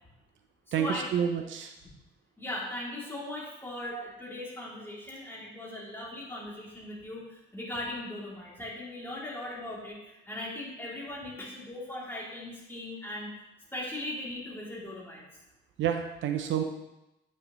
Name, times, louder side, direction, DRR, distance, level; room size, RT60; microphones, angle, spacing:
voice 1, 0.7-1.7 3.9-4.0 15.8-16.6, right 9 dB, 75° right, 6 dB, 0.7 m, -29 dB
voice 2, 2.4-13.3 13.7-15.2, left 1 dB, 10° left, -5 dB, 2.9 m, -39 dB
8.5 x 6.3 x 3.1 m, 0.93 s
cardioid pair, 90°, 20 cm